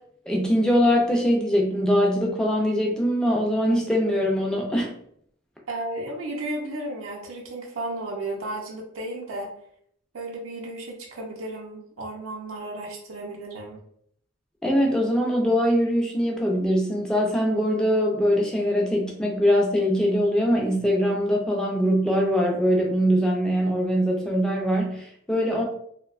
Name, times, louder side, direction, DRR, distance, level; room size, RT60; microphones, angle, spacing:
voice 1, 0.3-4.9 14.6-25.6, equal, 5° left, -1 dB, 0.4 m, -22 dB
voice 2, 5.7-9.5 10.1-13.8 25.4-25.5, right 1 dB, 85° right, 0 dB, 0.6 m, -34 dB
2.6 x 2.1 x 2.4 m, 0.67 s
head